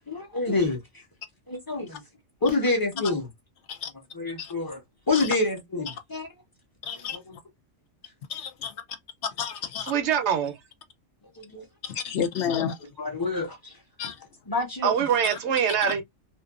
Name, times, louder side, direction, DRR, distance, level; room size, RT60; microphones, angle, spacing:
voice 1, 0.1-0.8 1.5-2.0 2.4-3.2 4.2-4.8 5.1-6.3 11.4-11.6 13.0-13.7 14.5-14.9, left 3 dB, 20° left, 0.8 m, -27 dB
voice 2, 6.8-7.4 8.3-8.8 9.3-9.9 11.8-12.8 14.0-14.2 15.3-15.4 15.7-15.9, left 7 dB, 70° left, 0.9 m, -31 dB
voice 3, 9.9-10.6 14.8-16.0, right 8 dB, 70° right, 0.9 m, -24 dB
2.6 x 2.4 x 2.3 m
omnidirectional pair, 1.3 m